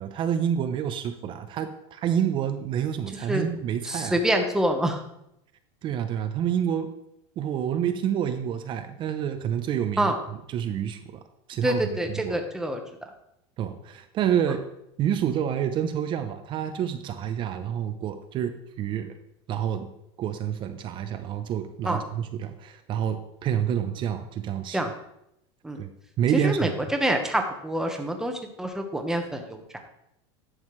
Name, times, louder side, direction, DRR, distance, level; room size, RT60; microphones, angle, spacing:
voice 1, 0.0-4.2 5.8-6.9 7.4-10.1 10.5-11.0 11.5-11.8 12.1-12.4 13.6-14.6 15.0-19.1 19.5-19.9 20.2-24.8 25.8-25.9 26.2-26.7, right 9 dB, 35° right, 8 dB, 0.6 m, -28 dB
voice 2, 3.8-5.0 10.0-10.1 11.6-12.8 21.8-22.0 24.7-24.9 25.6-25.8 26.3-28.3 28.6-29.6, right 1 dB, 5° right, 4 dB, 1.0 m, -26 dB
11.0 x 6.4 x 3.2 m, 0.79 s
supercardioid pair, 140°, 15 cm